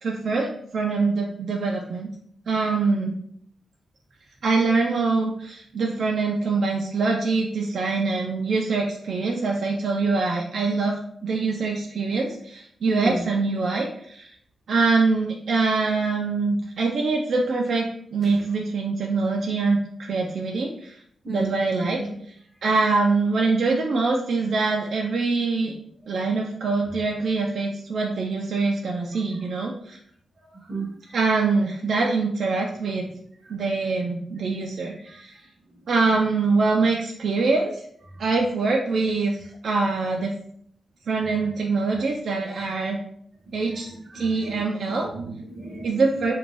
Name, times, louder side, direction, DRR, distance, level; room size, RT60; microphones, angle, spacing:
voice 1, 0.0-2.1 2.5-3.2 4.4-14.4 14.7-21.0 21.3-22.1 22.6-25.7 26.1-30.0 31.1-33.1 33.5-35.4 35.9-37.8 38.2-40.3 41.1-43.0 43.5-45.1 45.8-46.3, right 3 dB, 55° right, 0 dB, 0.3 m, -24 dB
voice 2, 12.8-13.2 18.2-18.4 21.2-21.5 21.8-22.1 30.7-31.2 35.1-35.4 43.5-43.8 44.1-44.6 45.0-46.0, right 2 dB, 25° right, 0 dB, 0.6 m, -34 dB
2.5 x 2.2 x 3.1 m, 0.66 s
wide cardioid pair, 145°, 0 cm